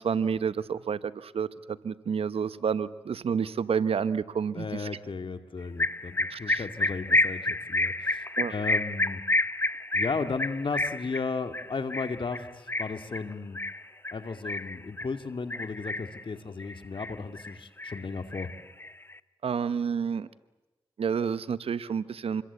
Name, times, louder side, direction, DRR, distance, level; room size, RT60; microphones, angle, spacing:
voice 1, 0.0-4.9 6.3-6.7 8.4-8.5 19.4-20.3 21.0-22.4, right 6 dB, 75° right, 16 dB, 0.9 m, -29 dB
voice 2, 4.5-8.2 8.5-9.2 9.9-13.6 14.1-18.5, left 4 dB, 60° left, 9 dB, 2.1 m, -35 dB
sound 1, 5.8-15.1 15.5-16.2 16.6-17.5 17.8-19.1, left 2 dB, 25° left, 0.9 m, -29 dB
27.5 x 22.0 x 8.2 m, 1.1 s
cardioid pair, 45°, 10 cm